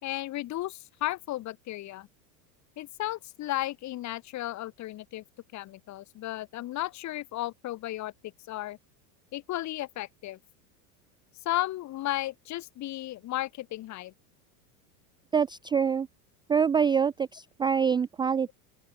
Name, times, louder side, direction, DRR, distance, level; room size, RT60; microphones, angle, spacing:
voice 1, 0.0-2.1 2.8-5.2 5.5-8.1 8.5-8.8 9.3-10.4 11.4-14.1, left 15 dB, 40° left, 3.2 m, -34 dB
voice 2, 15.3-16.1 16.5-18.5, right 6 dB, 10° right, 0.4 m, -25 dB
open air
supercardioid pair, 130°, 44 cm